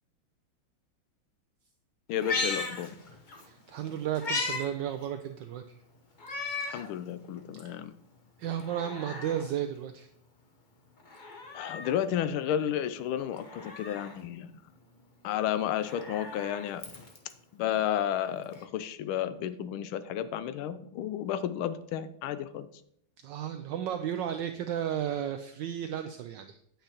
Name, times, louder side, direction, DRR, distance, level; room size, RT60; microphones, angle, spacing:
voice 1, 2.1-2.9 6.7-7.9 11.5-14.6 15.2-16.8 17.5-22.7, left 10 dB, 80° left, 13 dB, 1.4 m, -32 dB
Meow, 2.1-3.4 3.8-4.7 5.0-5.1 6.2-6.9 7.4-7.5 8.5-9.5 11.0-12.0 13.3-14.2 15.6-17.3 18.5-18.6, left 3 dB, 35° left, 0.7 m, -36 dB
voice 2, 3.4-5.6 7.5-7.6 8.4-10.1 23.2-26.8, right 10 dB, 75° right, 7 dB, 1.1 m, -34 dB
9.0 x 8.7 x 2.9 m, 0.68 s
omnidirectional pair, 2.4 m